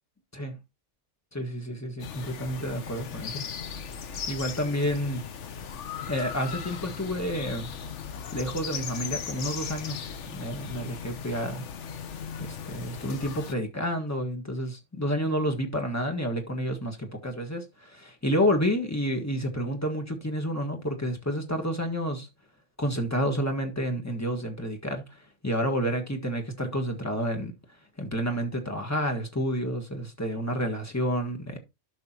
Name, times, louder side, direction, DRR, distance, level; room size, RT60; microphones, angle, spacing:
voice 1, 1.3-3.5 4.3-5.2 6.1-7.7 8.3-11.6 12.4-22.3 22.8-25.0 25.4-27.5 28.0-31.6, equal, 15° left, 1.4 m, -29 dB
sound 1, 2.0-13.5, left 7 dB, 75° left, 1.1 m, -37 dB
11.5 x 6.4 x 2.8 m
omnidirectional pair, 1.2 m